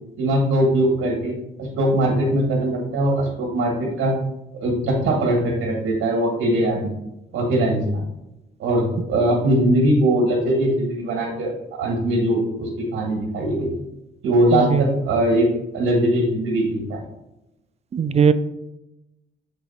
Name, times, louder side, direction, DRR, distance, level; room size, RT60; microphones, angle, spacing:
voice 1, 0.2-1.3 1.6-4.1 4.5-6.9 7.3-8.0 8.6-13.8 14.2-15.5 15.7-17.0, right 1 dB, 85° right, -1 dB, 1.7 m, -21 dB
voice 2, 14.5-14.9 17.9-18.3, right 6 dB, 35° right, 13 dB, 0.4 m, -18 dB
6.8 x 4.0 x 4.2 m, 0.92 s
cardioid pair, 90°, 20 cm